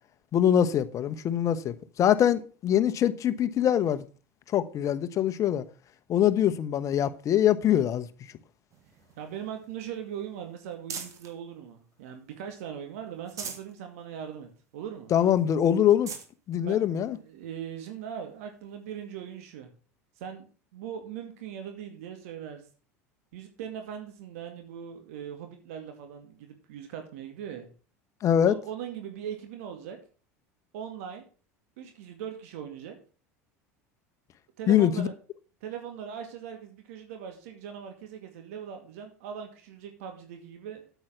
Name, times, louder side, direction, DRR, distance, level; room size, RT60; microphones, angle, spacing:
voice 1, 0.3-4.0 4.5-5.6 6.1-8.1 15.1-16.1 16.5-17.2 28.2-28.5 34.7-35.1, left 10 dB, 40° left, 1.1 m, -23 dB
sound 1, 8.7-11.4 11.9-12.7 13.1-13.8 14.2-14.3 14.7-14.8 15.4-15.5 15.8-16.3 17.1-17.2 19.0-19.1, right 6 dB, 40° right, 2.4 m, -43 dB
voice 2, 9.2-15.1 16.6-19.7 20.2-22.6 23.3-27.7 28.4-30.0 30.7-31.2 31.8-33.0 34.6-35.1 35.6-40.8, right 8 dB, 70° right, 2.3 m, -40 dB
8.7 x 8.1 x 6.0 m
hypercardioid pair, 80°, 8 cm